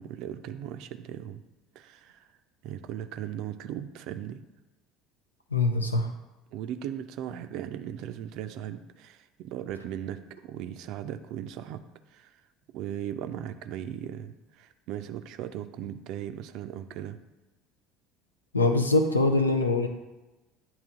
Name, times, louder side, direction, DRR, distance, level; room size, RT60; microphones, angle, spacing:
voice 1, 0.0-1.4 1.8-2.3 2.6-4.4 6.5-11.8 12.1-12.3 12.7-17.2, right 10 dB, 55° right, 10 dB, 0.4 m, -38 dB
voice 2, 5.5-6.1 18.5-19.9, left 2 dB, 85° left, 5 dB, 0.5 m, -23 dB
9.0 x 3.0 x 3.7 m, 1.1 s
figure-of-eight pair, 65°, 0 cm